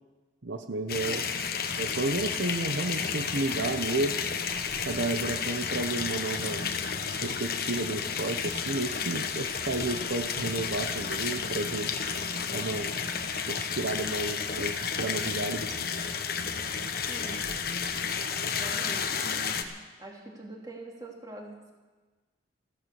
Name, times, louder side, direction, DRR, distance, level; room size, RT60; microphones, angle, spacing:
voice 1, 0.4-1.2 1.8-4.2 4.9-6.7 7.2-11.9 12.5-12.9 13.5-15.8, right 2 dB, 80° right, 7 dB, 0.9 m, -32 dB
sound 1, 0.9-19.6, left 6 dB, 55° left, 1.2 m, -32 dB
sound 2, 1.4-18.8, left 3 dB, 80° left, 1.5 m, -53 dB
voice 2, 17.1-17.4 18.6-19.3 20.0-21.7, right 2 dB, 20° right, -1 dB, 2.9 m, -43 dB
15.5 x 13.0 x 7.0 m, 1.3 s
head